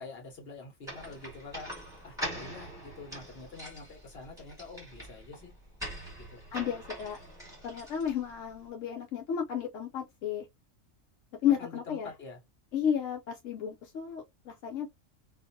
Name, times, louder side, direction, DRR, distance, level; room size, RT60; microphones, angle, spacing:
voice 1, 0.0-1.7 2.0-5.5 6.2-6.4 11.4-12.4, left 3 dB, 55° left, 1.4 m, -46 dB
sound 1, 0.8-8.5, equal, 5° right, 1.5 m, -43 dB
voice 2, 6.5-7.2 7.6-10.5 11.4-12.1 12.7-14.9, left 9 dB, 80° left, 1.0 m, -32 dB
2.8 x 2.5 x 2.6 m
omnidirectional pair, 1.3 m